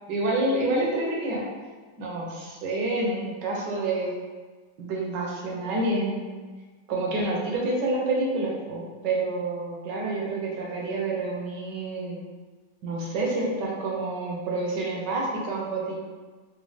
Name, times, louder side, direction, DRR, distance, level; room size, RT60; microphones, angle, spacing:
voice 1, 0.1-1.4 2.0-4.1 4.8-6.2 6.9-12.2 12.8-16.0, right 2 dB, 70° right, -3 dB, 1.4 m, -28 dB
4.1 x 2.1 x 3.1 m, 1.4 s
omnidirectional pair, 2.0 m